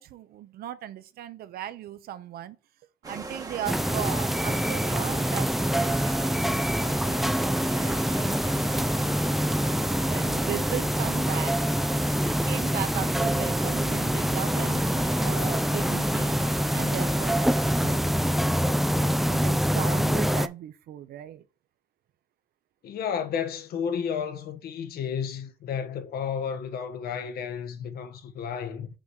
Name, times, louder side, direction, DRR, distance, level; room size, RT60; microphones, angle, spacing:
voice 1, 0.0-2.6 3.0-8.9 10.0-11.6 12.4-16.4 16.7-18.1 18.4-21.4, right 11 dB, 65° right, 0.7 m, -37 dB
sound 1, 3.0-18.0, right 3 dB, 20° right, 1.2 m, -40 dB
sound 2, 3.7-20.5, equal, ahead, 0.4 m, -25 dB
voice 2, 22.8-28.9, left 7 dB, 65° left, 1.2 m, -32 dB
6.1 x 4.0 x 4.6 m
cardioid pair, 110°, 17 cm